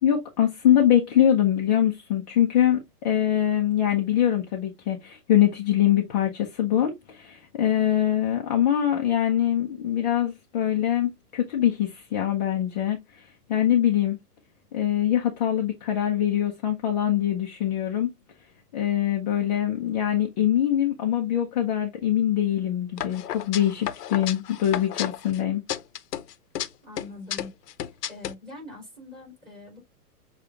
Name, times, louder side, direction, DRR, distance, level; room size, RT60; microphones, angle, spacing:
voice 1, 0.0-14.2 14.7-18.1 18.7-25.6, left 11 dB, 25° left, 0.6 m, -23 dB
sound 1, 23.0-25.4 25.7-26.7 27.0-28.3, left 11 dB, 80° left, 0.9 m, -32 dB
voice 2, 26.8-27.5 28.1-29.8, left 2 dB, 10° right, 3.4 m, -43 dB
6.6 x 2.4 x 2.8 m
hypercardioid pair, 160°, 47 cm